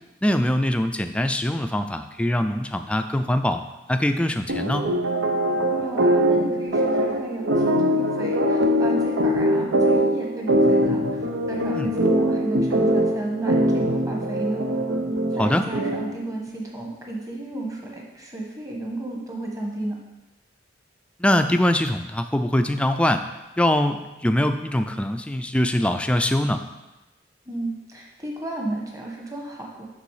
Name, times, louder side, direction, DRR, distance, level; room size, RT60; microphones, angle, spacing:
voice 1, 0.2-3.6 3.9-4.9 11.7-11.9 15.4-15.7 21.2-23.2 23.6-26.6, left 1 dB, 5° left, 7 dB, 0.4 m, -23 dB
sound 1, 4.5-16.3, equal, 85° right, 0.8 m, -22 dB
voice 2, 5.8-14.6 15.3-20.0 27.5-29.8, right 2 dB, 20° right, -1 dB, 1.3 m, -33 dB
6.8 x 6.1 x 4.8 m, 1.0 s
head